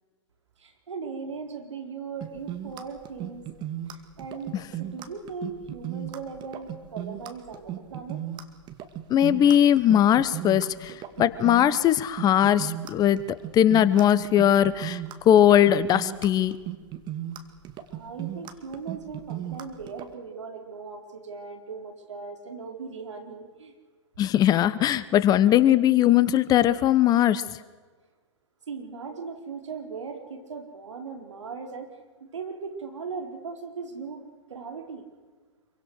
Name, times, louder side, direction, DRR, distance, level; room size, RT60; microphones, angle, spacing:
voice 1, 0.6-3.5 3.9-8.2 17.9-23.7 28.7-31.9 32.2-35.0, right 5 dB, 75° right, 4 dB, 4.5 m, -38 dB
sound 1, 2.2-20.1, right 11 dB, 30° right, 2.2 m, -36 dB
voice 2, 9.1-13.2 13.5-15.0 15.3-16.6 24.2-27.4, left 11 dB, 25° left, 16 dB, 1.0 m, -20 dB
26.5 x 24.0 x 6.5 m, 1.4 s
figure-of-eight pair, 115°, 16 cm